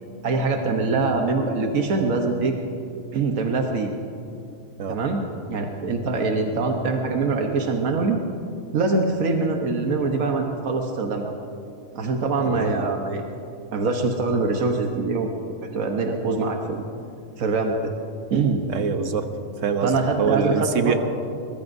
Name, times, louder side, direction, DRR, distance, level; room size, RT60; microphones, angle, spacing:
voice 1, 0.2-2.5 3.1-3.9 4.9-5.2 5.5-8.2 8.7-11.3 11.9-13.2 13.7-15.3 15.7-16.8 17.4-17.8 18.3-18.6 19.8-21.0, right 3 dB, 85° right, 2 dB, 1.5 m, -23 dB
voice 2, 18.7-19.3 19.6-21.0, right 5 dB, 70° right, 7 dB, 1.3 m, -24 dB
23.0 x 21.0 x 2.7 m, 2.6 s
omnidirectional pair, 1.4 m